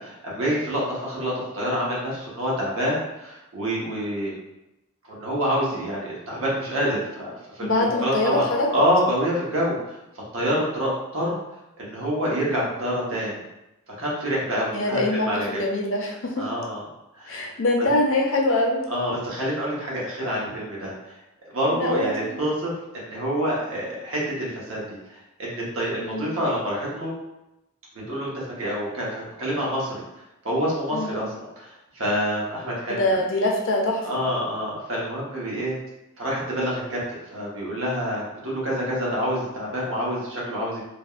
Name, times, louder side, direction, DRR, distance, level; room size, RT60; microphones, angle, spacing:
voice 1, 0.0-4.3 5.1-7.7 8.0-8.5 8.7-10.0 10.3-11.4 11.8-13.4 14.0-15.6 16.4-16.8 17.2-17.5 18.9-21.2 21.5-27.1 28.1-28.3 28.6-30.0 30.4-33.0 34.0-35.8 36.2-37.0 37.3-40.8, equal, 75° right, -5 dB, 1.0 m, -27 dB
voice 2, 7.6-8.7 14.7-16.5 17.3-18.9 21.7-22.4 26.0-26.3 30.9-31.2 32.9-34.1, left 2 dB, 65° left, 0 dB, 0.5 m, -24 dB
3.4 x 2.1 x 2.3 m, 0.93 s
head